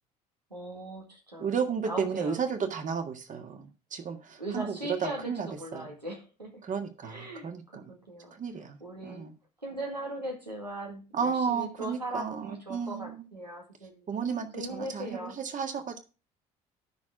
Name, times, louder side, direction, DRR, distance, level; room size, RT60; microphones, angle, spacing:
voice 1, 0.5-1.5 1.9-2.4 4.4-6.6 7.0-7.5 7.7-8.4 8.8-9.2 9.6-14.1 14.5-15.3, right 1 dB, 90° right, 2.1 m, -39 dB
voice 2, 1.4-5.9 6.6-7.9 8.3-8.8 9.0-9.3 11.1-13.2 14.1-16.0, right 6 dB, 40° right, 1.8 m, -33 dB
10.5 x 6.2 x 5.0 m
figure-of-eight pair, 55°, 21 cm